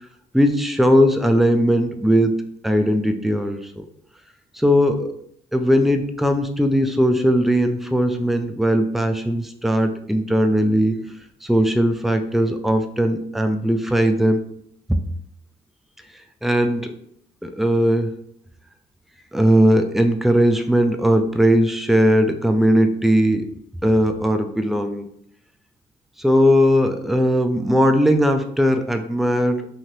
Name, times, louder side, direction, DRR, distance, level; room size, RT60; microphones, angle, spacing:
voice 1, 0.3-2.4 2.6-3.9 4.6-5.1 5.5-11.0 11.4-14.4 16.4-16.9 17.4-18.1 19.3-23.5 23.8-25.1 26.2-29.7, equal, ahead, 6 dB, 0.3 m, -18 dB
2.8 x 2.5 x 3.0 m, 0.67 s
cardioid pair, 85°, 19 cm